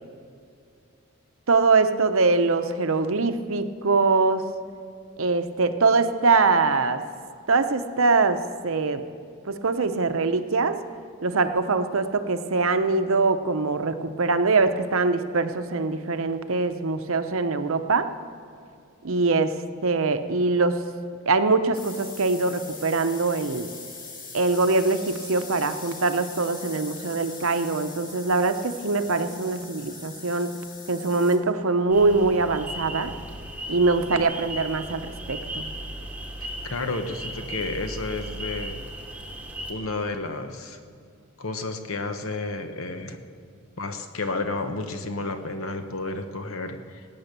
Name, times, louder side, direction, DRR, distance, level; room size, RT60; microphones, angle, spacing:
voice 1, 1.5-4.4 5.2-7.0 7.5-9.0 9.4-10.8 11.2-18.1 19.0-19.6 19.8-20.8 21.3-23.7 24.3-30.5 30.9-33.1 33.7-35.7, right 3 dB, 65° right, 9 dB, 0.8 m, -23 dB
sound 1, 21.7-31.4, left 4 dB, 40° left, 1.7 m, -41 dB
sound 2, 31.9-39.7, right 1 dB, 5° right, 1.1 m, -36 dB
voice 2, 36.4-38.8 39.7-40.8 41.4-43.2 43.8-47.1, left 3 dB, 70° left, 7 dB, 1.1 m, -31 dB
18.0 x 8.9 x 6.8 m, 2.3 s
head